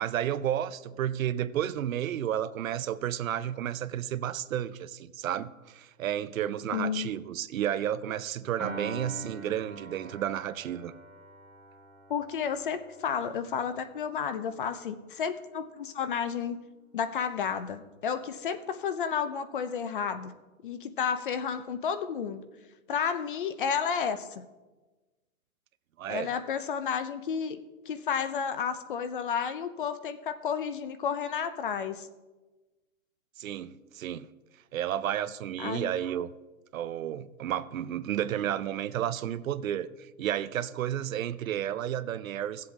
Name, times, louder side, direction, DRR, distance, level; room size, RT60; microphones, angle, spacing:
voice 1, 0.0-10.9 26.0-26.3 33.4-34.3 34.7-36.3 36.7-42.7, right 11 dB, 70° right, 14 dB, 0.6 m, -32 dB
voice 2, 6.7-7.1 12.1-16.6 16.9-20.3 20.6-22.4 22.9-24.4 26.1-27.6 27.9-32.1 35.6-35.9, left 7 dB, 40° left, 11 dB, 0.6 m, -31 dB
Piano, 8.6-15.0, right 2 dB, 5° left, 0.8 m, -45 dB
16.0 x 7.6 x 3.5 m, 1.2 s
hypercardioid pair, 165°, 42 cm